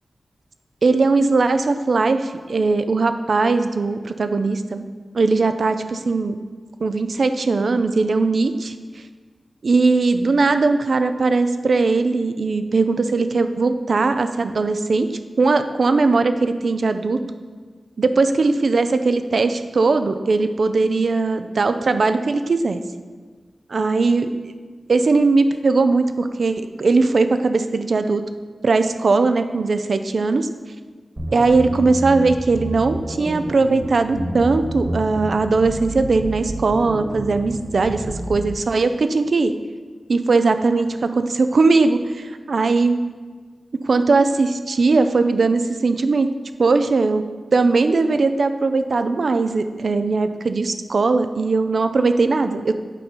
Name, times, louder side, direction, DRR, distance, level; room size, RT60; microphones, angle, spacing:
voice 1, 0.8-4.8 5.1-6.4 6.8-8.7 9.6-15.1 15.4-17.2 18.0-22.8 23.7-24.5 24.9-28.2 28.6-30.5 31.3-39.5 40.1-43.0 43.9-46.3 46.6-47.2 47.5-52.7, right 3 dB, 70° right, 9 dB, 0.5 m, -19 dB
sound 1, 31.2-38.5, right 1 dB, 40° right, 1.9 m, -30 dB
8.2 x 4.3 x 5.4 m, 1.5 s
cardioid pair, 45°, 0 cm